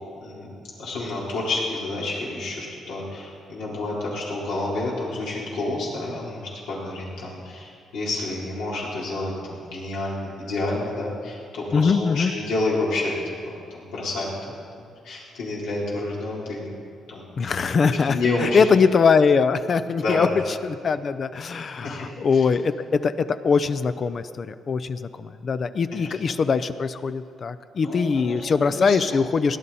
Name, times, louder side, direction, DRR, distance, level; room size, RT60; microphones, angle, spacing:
voice 1, 0.2-0.5 0.8-14.3 14.8-17.3 18.1-18.6 20.0-20.4 21.4-22.4 25.9-26.1 27.8-29.2, left 2 dB, 90° left, -6 dB, 3.9 m, -29 dB
voice 2, 11.7-12.3 17.4-20.3 20.6-29.6, left 5 dB, 45° left, 12 dB, 0.5 m, -22 dB
17.5 x 11.0 x 4.2 m, 2.3 s
cardioid pair, 90°, 0 cm